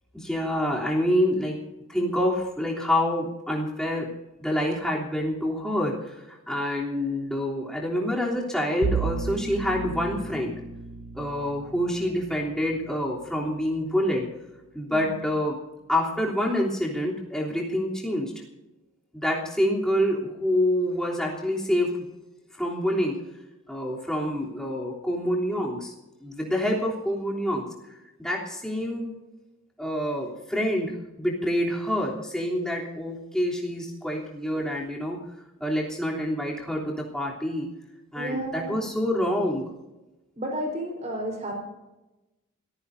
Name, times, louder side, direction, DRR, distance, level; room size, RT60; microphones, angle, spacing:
voice 1, 0.1-1.6 1.9-4.1 4.4-10.6 11.1-14.3 14.7-15.6 15.9-18.3 19.1-22.1 22.6-23.2 23.7-25.9 26.2-27.7 28.2-29.1 29.8-35.2 35.6-37.7 38.1-39.7, equal, 5° left, -3 dB, 3.2 m, -27 dB
Bowed string instrument, 8.8-13.9, right 4 dB, 90° right, 0.9 m, -34 dB
voice 2, 14.9-15.2 38.1-38.9 40.4-41.6, right 1 dB, 30° right, 1 dB, 4.3 m, -32 dB
27.0 x 14.5 x 2.7 m, 1.0 s
head